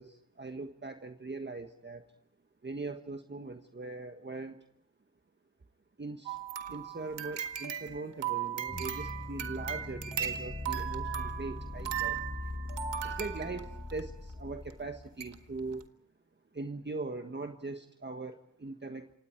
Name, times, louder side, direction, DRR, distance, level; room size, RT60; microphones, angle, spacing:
voice 1, 0.0-2.1 2.6-4.6 6.0-6.4 6.7-12.3 13.0-15.8 16.5-19.1, right 3 dB, 25° right, 6 dB, 1.5 m, -41 dB
sound 1, 6.3-14.0 14.7-14.8 15.2-15.3 15.7-15.8, right 9 dB, 85° right, 1.7 m, -37 dB
sound 2, 8.7-15.8, left 2 dB, 20° left, 1.5 m, -41 dB
28.5 x 26.0 x 4.6 m, 0.66 s
cardioid pair, 70°, 42 cm